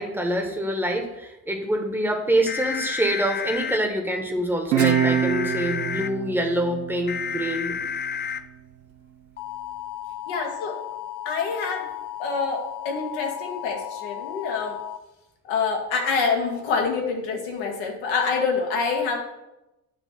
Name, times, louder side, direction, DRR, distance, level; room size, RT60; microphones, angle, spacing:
voice 1, 0.0-7.8, right 1 dB, 5° right, 2 dB, 1.3 m, -25 dB
sound 1, 2.5-3.8 4.8-6.1 7.1-8.4 9.4-15.0, left 8 dB, 25° left, 0.3 m, -32 dB
Guitar, 4.7-7.9, right 10 dB, 80° right, 0.6 m, -25 dB
voice 2, 10.3-10.7 11.2-11.9 12.2-14.8 15.4-19.2, left 5 dB, 65° left, 1 dB, 1.6 m, -26 dB
8.8 x 3.4 x 5.8 m, 0.95 s
figure-of-eight pair, 50°, 48 cm